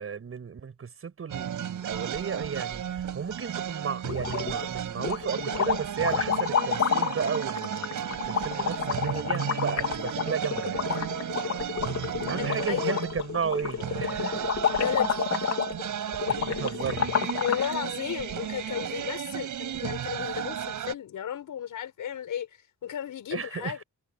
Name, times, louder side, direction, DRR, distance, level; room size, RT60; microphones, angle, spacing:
voice 1, 0.0-11.0 12.3-14.5 16.3-17.4 20.2-20.3 23.3-23.7, right 6 dB, 45° right, 7.3 m, -34 dB
sound 1, 1.3-20.9, right 9 dB, 80° right, 5.9 m, -34 dB
sound 2, 4.1-4.7 5.0-17.7, left 7 dB, 60° left, 4.1 m, -30 dB
voice 2, 12.4-13.0 14.7-15.2 17.4-23.8, left 9 dB, 85° left, 5.5 m, -33 dB
wide cardioid pair, 145°, 31 cm